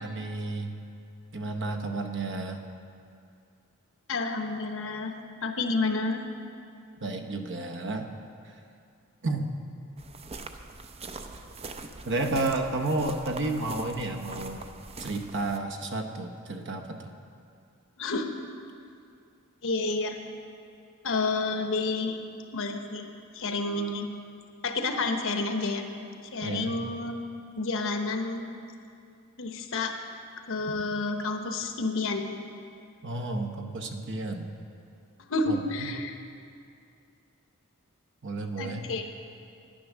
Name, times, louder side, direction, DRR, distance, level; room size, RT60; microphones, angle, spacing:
voice 1, 0.0-0.7 1.3-2.6 7.0-8.1 8.5-8.6 9.2-9.5 12.0-14.7 15.0-17.0 26.4-26.7 33.0-34.6 35.5-35.6 38.2-38.9, right 2 dB, 55° right, 5 dB, 0.9 m, -31 dB
voice 2, 4.1-5.1 5.4-6.2 18.0-18.3 19.6-20.2 21.0-22.2 22.5-23.0 23.3-24.1 24.6-25.8 26.2-27.1 27.5-28.5 29.4-29.9 30.5-32.3 35.3-36.1 38.6-39.1, left 3 dB, 65° left, 5 dB, 0.9 m, -29 dB
sound 1, 10.0-15.6, right 3 dB, 30° right, 0.5 m, -42 dB
10.0 x 9.8 x 6.1 m, 2.5 s
head